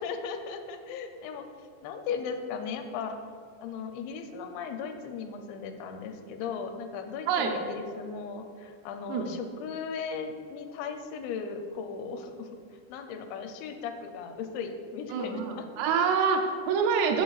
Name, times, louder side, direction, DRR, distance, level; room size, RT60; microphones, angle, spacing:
voice 1, 0.0-1.5 1.8-3.2 3.6-12.5 12.9-15.6, left 6 dB, 85° left, 6 dB, 2.9 m, -37 dB
voice 2, 15.1-17.2, right 6 dB, 80° right, 3 dB, 2.6 m, -26 dB
11.5 x 6.3 x 2.4 m, 2.3 s
omnidirectional pair, 5.1 m